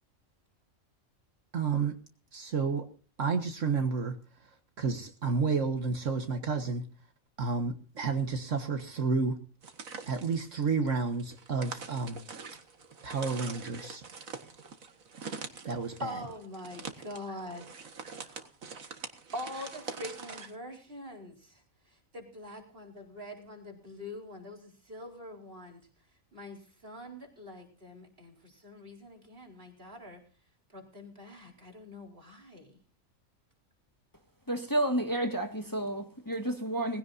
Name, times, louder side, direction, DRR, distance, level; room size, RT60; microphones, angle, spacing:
voice 1, 1.5-1.9 2.3-2.9 3.2-4.2 4.8-6.8 7.4-9.4 10.1-12.2 13.0-14.0 15.6-16.1, right 5 dB, 70° right, 1.8 m, -30 dB
sound 1, 9.6-20.5, right 5 dB, 85° right, 2.1 m, -44 dB
voice 2, 16.0-17.9 18.2-18.5 19.3-21.6 21.9-25.8 26.3-30.2 30.7-32.8, left 1 dB, 45° right, 4.6 m, -44 dB
voice 3, 34.5-37.0, right 1 dB, 15° left, 1.9 m, -31 dB
20.5 x 16.5 x 2.7 m
omnidirectional pair, 1.4 m